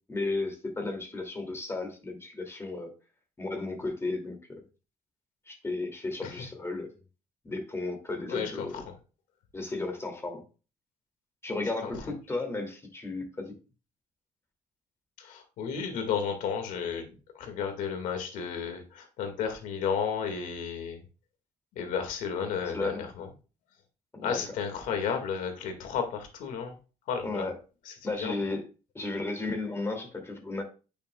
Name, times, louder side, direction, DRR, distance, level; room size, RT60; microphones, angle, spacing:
voice 1, 0.1-2.9 3.4-4.6 5.5-6.9 7.4-8.8 9.5-10.4 11.4-13.6 22.6-23.1 24.1-24.6 27.2-27.6 28.0-28.7 28.9-30.6, left 2 dB, 20° left, 2.5 m, -34 dB
voice 2, 8.3-8.9 11.8-11.9 15.2-17.1 17.4-21.0 21.7-23.3 24.2-26.7 27.1-27.5 27.9-28.0 28.2-28.4, left 6 dB, 85° left, 2.0 m, -33 dB
9.0 x 6.5 x 2.3 m
cardioid pair, 105°, 13 cm